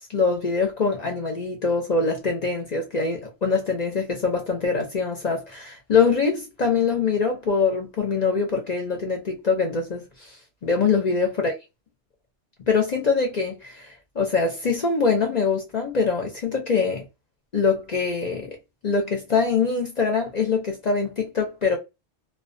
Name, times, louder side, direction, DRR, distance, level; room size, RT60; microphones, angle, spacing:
voice 1, 0.1-10.3 10.6-11.5 12.7-17.0 17.5-18.6 18.8-21.8, left 5 dB, 50° left, 0.5 m, -23 dB
2.2 x 2.2 x 2.5 m
omnidirectional pair, 1.2 m